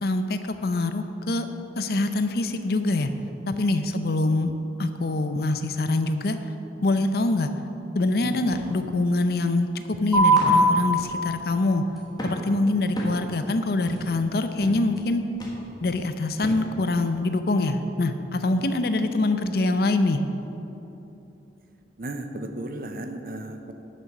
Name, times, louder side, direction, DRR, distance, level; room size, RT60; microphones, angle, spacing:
voice 1, 0.0-1.5 1.8-3.1 3.5-4.5 4.8-6.4 6.8-7.5 7.9-11.8 12.2-15.2 15.8-20.2, left 2 dB, 60° left, 9 dB, 0.6 m, -24 dB
sound 1, 8.5-8.7 9.2-9.3 10.4-10.7 11.0-11.2 12.2-12.5 13.0-13.2 13.9-14.1 14.6-14.8 15.4-15.6 16.4-16.7 17.4-17.5, equal, 25° left, 1.5 m, -36 dB
sound 2, 10.1-17.1, right 1 dB, ahead, 2.3 m, -27 dB
voice 2, 22.0-23.7, right 1 dB, 50° right, 6 dB, 0.8 m, -35 dB
11.0 x 6.7 x 5.9 m, 3.0 s
head